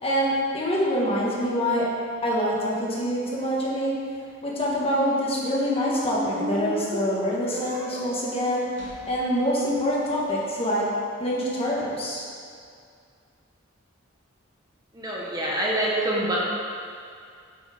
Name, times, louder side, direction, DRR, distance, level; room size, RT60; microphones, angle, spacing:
voice 1, 0.0-1.9 2.2-4.0 4.4-10.9 11.2-12.2, equal, 30° left, -5 dB, 1.4 m, -25 dB
sound 1, 4.5-10.4, left 1 dB, 65° right, 1.4 m, -35 dB
voice 2, 14.9-16.4, right 1 dB, 20° right, -4 dB, 1.0 m, -26 dB
7.1 x 4.5 x 5.0 m, 2.3 s
head